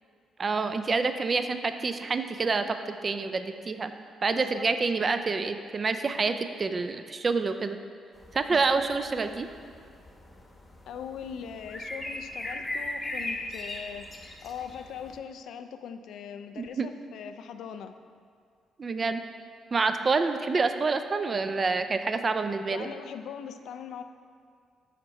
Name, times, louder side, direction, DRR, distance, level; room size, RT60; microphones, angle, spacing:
voice 1, 0.4-3.9 4.2-7.8 8.3-9.5 16.6-16.9 18.8-19.2 19.7-22.9, right 4 dB, 35° right, 9 dB, 0.3 m, -27 dB
voice 2, 4.3-4.7 5.0-5.2 8.5-8.8 10.9-18.0 22.6-24.0, left 7 dB, 75° left, 9 dB, 0.3 m, -41 dB
sound 1, 8.2-15.2, left 1 dB, 20° left, 0.8 m, -39 dB
5.7 x 4.5 x 4.1 m, 2.2 s
cardioid pair, 90°, 0 cm